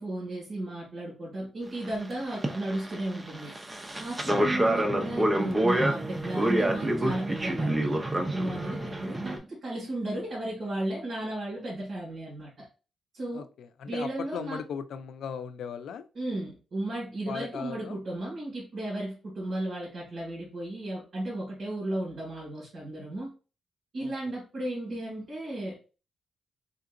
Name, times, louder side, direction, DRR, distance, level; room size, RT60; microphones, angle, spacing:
voice 1, 0.0-3.5 4.0-7.9 8.2-12.7 13.1-13.4 13.9-14.6 16.1-23.3 23.9-25.7, right 1 dB, 45° right, -6 dB, 2.0 m, -34 dB
sound 1, 1.8-2.0 2.3-9.4, right 1 dB, 20° right, 0.6 m, -28 dB
voice 2, 4.2-4.6 13.3-16.1 17.3-18.0 24.0-24.1, left 7 dB, 80° left, 11 dB, 0.4 m, -38 dB
3.9 x 3.6 x 2.5 m, 0.34 s
cardioid pair, 135°, 0 cm